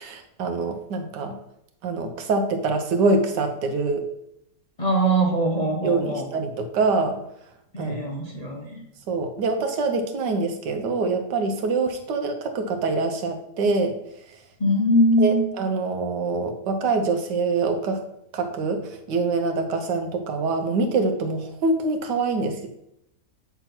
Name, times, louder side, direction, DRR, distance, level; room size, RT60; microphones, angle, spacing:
voice 1, 0.0-1.3 1.8-4.1 5.8-7.2 7.8-8.0 9.1-14.0 15.2-18.0 18.3-22.7, right 3 dB, 80° right, 6 dB, 1.5 m, -25 dB
voice 2, 4.8-6.3 7.7-8.8 14.6-15.5, right 1 dB, 30° left, -1 dB, 0.9 m, -22 dB
8.0 x 3.5 x 5.9 m, 0.78 s
omnidirectional pair, 1.8 m